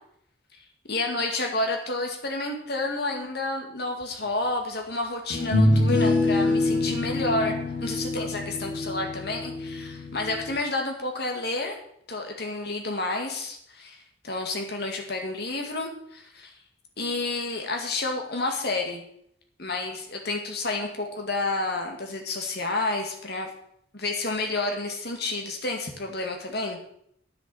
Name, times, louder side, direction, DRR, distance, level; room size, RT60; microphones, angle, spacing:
voice 1, 0.9-7.6 7.8-11.8 12.1-16.5 17.0-19.0 19.6-23.5 23.9-26.8, left 2 dB, 60° left, 2 dB, 2.1 m, -30 dB
sound 1, 4.2-4.3 5.3-10.6, left 2 dB, 75° left, 2.8 m, -25 dB
9.9 x 7.1 x 8.6 m, 0.69 s
head